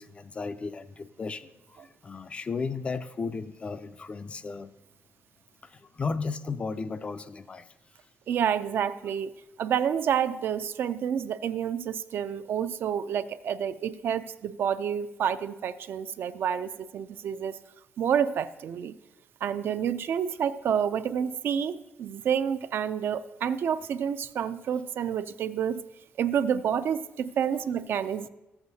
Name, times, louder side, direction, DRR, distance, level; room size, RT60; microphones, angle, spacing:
voice 1, 0.0-4.7 5.6-7.7, left 4 dB, 25° left, 0.3 m, -35 dB
voice 2, 8.3-9.3 9.6-17.6 18.0-18.9 19.4-25.8 26.2-28.3, right 8 dB, 60° right, 0.3 m, -29 dB
13.5 x 7.9 x 2.7 m
cardioid pair, 145°, 4 cm